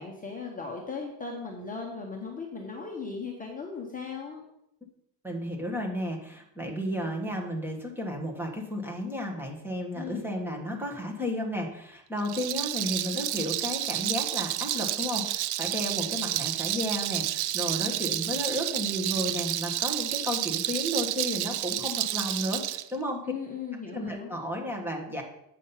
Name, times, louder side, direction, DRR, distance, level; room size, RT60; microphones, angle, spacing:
voice 1, 0.0-4.4 9.9-10.3 23.2-24.3, left 5 dB, 20° left, 0 dB, 1.1 m, -37 dB
voice 2, 5.2-23.2 23.9-25.2, equal, 5° right, 0 dB, 1.5 m, -33 dB
Rattle, 12.2-22.8, right 14 dB, 60° right, 0.5 m, -30 dB
8.3 x 6.2 x 5.7 m, 0.78 s
cardioid pair, 170°, 43 cm